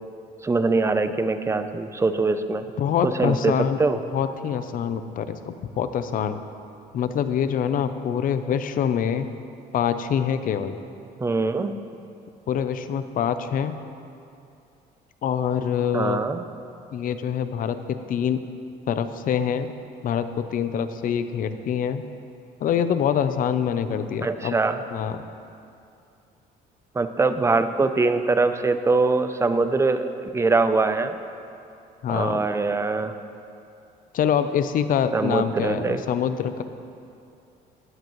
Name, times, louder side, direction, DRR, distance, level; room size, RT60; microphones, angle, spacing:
voice 1, 0.4-2.7 3.0-4.0 11.2-11.8 15.9-16.4 24.2-24.8 26.9-31.1 32.1-33.1 35.1-36.0, right 3 dB, 15° right, 10 dB, 0.5 m, -23 dB
voice 2, 2.8-3.8 4.1-6.4 6.9-9.3 9.7-10.8 12.5-13.7 15.2-16.2 16.9-18.4 18.9-19.7 20.0-22.0 22.6-24.6 24.9-25.2 32.0-32.5 34.1-36.6, left 8 dB, 55° left, 10 dB, 0.6 m, -25 dB
16.0 x 10.5 x 3.1 m, 2.5 s
cardioid pair, 110°, 17 cm